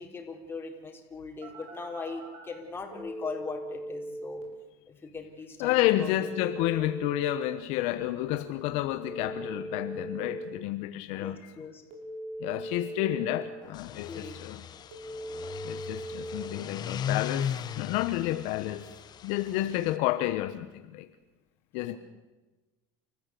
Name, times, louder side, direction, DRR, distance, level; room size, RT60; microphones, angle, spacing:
voice 1, 0.0-4.4 4.9-6.3 11.2-11.8 13.6-13.7 14.1-14.4 21.9-22.0, left 4 dB, 20° left, 2 dB, 4.5 m, -40 dB
Telephone, 1.4-2.4 2.9-4.4 5.9-7.4 8.9-10.4 11.9-13.4 14.9-16.4, right 1 dB, 65° right, 6.5 m, -39 dB
voice 2, 5.6-11.4 12.4-14.6 15.6-18.9 19.2-21.1 21.7-22.0, left 15 dB, 65° left, 9 dB, 1.2 m, -30 dB
sound 1, 13.7-19.9, left 9 dB, 35° left, 1.2 m, -37 dB
29.5 x 14.5 x 8.5 m, 1.2 s
supercardioid pair, 115°, 12 cm